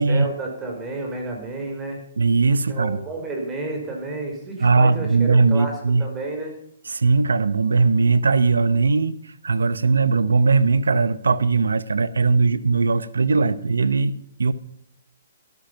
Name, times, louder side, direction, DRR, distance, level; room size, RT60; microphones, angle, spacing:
voice 1, 0.0-2.0 2.7-6.6, right 2 dB, 15° right, 1 dB, 5.0 m, -31 dB
voice 2, 2.2-3.0 4.6-6.0 6.9-9.2 9.4-14.5, right 4 dB, 80° right, 16 dB, 0.9 m, -19 dB
13.0 x 12.5 x 5.7 m, 0.68 s
hypercardioid pair, 135°, 0 cm